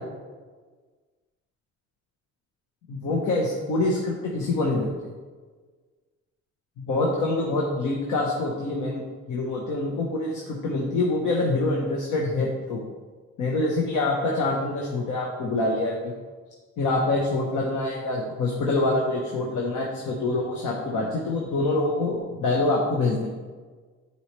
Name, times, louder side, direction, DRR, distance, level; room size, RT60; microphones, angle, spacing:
voice 1, 2.9-5.1 6.8-12.8 13.4-16.1 16.8-23.3, left 2 dB, 80° left, -1 dB, 1.2 m, -25 dB
9.6 x 4.8 x 3.3 m, 1.4 s
cardioid pair, 90°, 30 cm